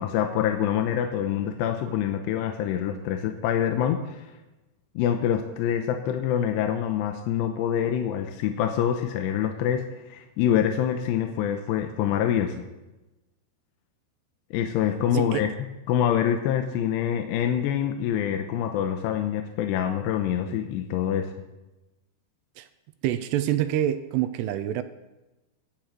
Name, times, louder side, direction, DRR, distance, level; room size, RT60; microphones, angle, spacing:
voice 1, 0.0-4.3 5.0-12.6 14.5-15.5 15.9-21.3, left 9 dB, 85° left, 5 dB, 2.9 m, -26 dB
voice 2, 15.1-15.5 22.6-22.7 23.0-24.8, right 11 dB, 80° right, 12 dB, 2.5 m, -26 dB
25.0 x 9.0 x 3.2 m, 1.0 s
omnidirectional pair, 5.0 m